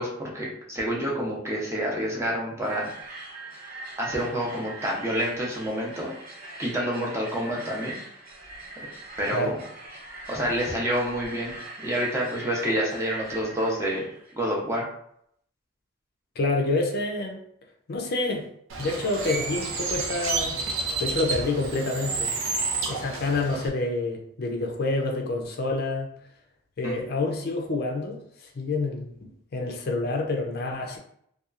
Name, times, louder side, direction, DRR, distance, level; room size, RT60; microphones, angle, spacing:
voice 1, 0.0-2.9 4.0-6.1 6.6-8.0 9.2-9.6 10.3-11.6 11.8-14.1 14.3-14.9 26.8-27.0, equal, 15° right, -3 dB, 0.6 m, -28 dB
sound 1, 2.6-14.3, right 2 dB, 45° right, 0.8 m, -41 dB
voice 2, 16.4-17.4 17.9-18.5 18.8-20.5 21.0-22.3 22.9-26.1 26.8-28.2 28.6-31.0, left 2 dB, 50° left, 1 dB, 0.5 m, -28 dB
Bird, 18.7-23.7, right 4 dB, 80° right, 0.5 m, -30 dB
2.8 x 2.3 x 2.4 m, 0.69 s
head